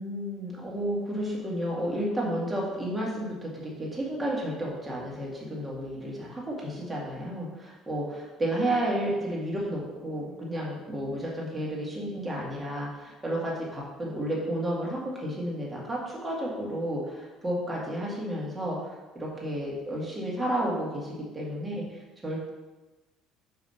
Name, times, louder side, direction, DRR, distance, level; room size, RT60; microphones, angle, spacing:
voice 1, 0.0-22.5, right 1 dB, 15° right, -4 dB, 1.8 m, -32 dB
5.2 x 4.8 x 5.5 m, 1.1 s
cardioid pair, 130°, 0 cm